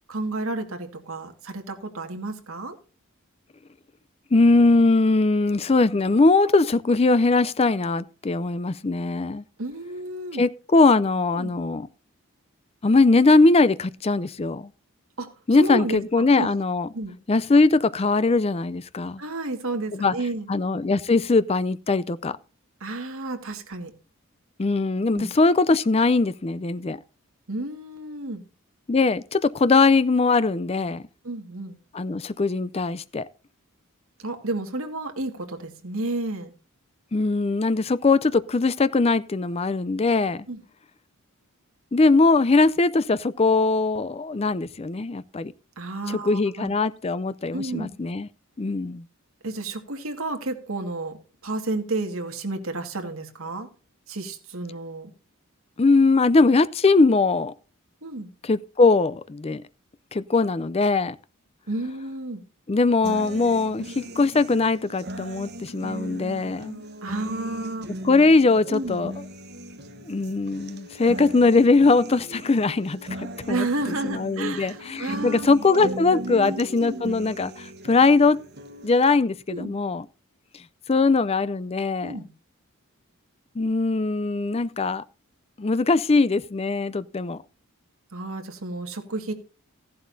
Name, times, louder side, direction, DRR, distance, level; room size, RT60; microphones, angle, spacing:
voice 1, 0.1-2.8 9.6-10.4 11.3-11.5 15.2-15.3 15.6-16.5 16.9-17.2 19.2-20.5 22.8-23.9 25.1-25.3 27.5-28.4 31.2-31.8 34.2-36.5 40.5-40.6 45.8-46.7 47.5-47.9 49.4-53.7 54.1-55.1 58.0-58.3 61.7-62.4 67.0-67.9 68.7-69.0 73.5-77.1 79.5-79.7 82.0-82.3 88.1-89.3, right 2 dB, 70° right, 1.9 m, -31 dB
voice 2, 4.3-9.4 10.4-11.9 12.8-14.7 15.5-16.9 17.3-19.2 20.0-20.1 20.5-22.4 24.6-27.0 28.9-31.0 31.9-33.3 37.1-40.5 41.9-45.5 46.2-48.3 48.6-49.0 55.8-57.5 58.4-59.6 60.1-61.2 62.7-66.8 68.0-69.1 70.1-73.7 74.0-78.4 78.8-80.1 80.9-82.2 83.6-85.0 85.6-87.4, left 3 dB, 25° left, 0.4 m, -21 dB
sound 1, 63.0-79.0, right 1 dB, 50° right, 1.2 m, -38 dB
15.0 x 11.5 x 2.7 m
head